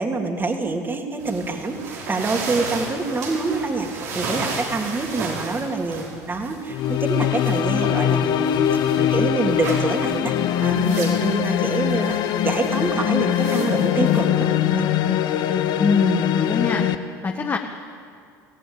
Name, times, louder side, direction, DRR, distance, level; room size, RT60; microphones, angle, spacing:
voice 1, 0.0-12.2 12.4-14.9, right 3 dB, 25° right, 3 dB, 3.1 m, -26 dB
sound 1, 1.2-14.8, right 4 dB, 80° right, 4.6 m, -35 dB
sound 2, 6.7-17.0, left 10 dB, 55° left, 1.2 m, -22 dB
voice 2, 15.8-16.8 17.2-17.6, left 4 dB, 25° left, 2 dB, 1.7 m, -22 dB
23.5 x 16.0 x 9.0 m, 2.3 s
hypercardioid pair, 75°, 9 cm